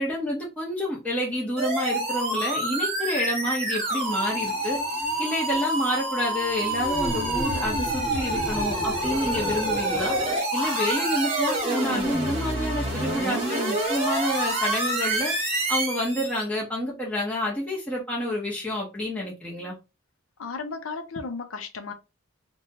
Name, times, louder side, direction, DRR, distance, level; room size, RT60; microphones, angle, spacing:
voice 1, 0.0-4.8 5.2-10.2 10.5-15.3 15.7-19.8, left 1 dB, 5° left, 0.8 m, -28 dB
sound 1, 1.6-16.4, right 1 dB, 30° right, 1.1 m, -27 dB
voice 2, 20.4-21.9, left 4 dB, 85° left, 0.5 m, -34 dB
2.8 x 2.2 x 2.8 m
head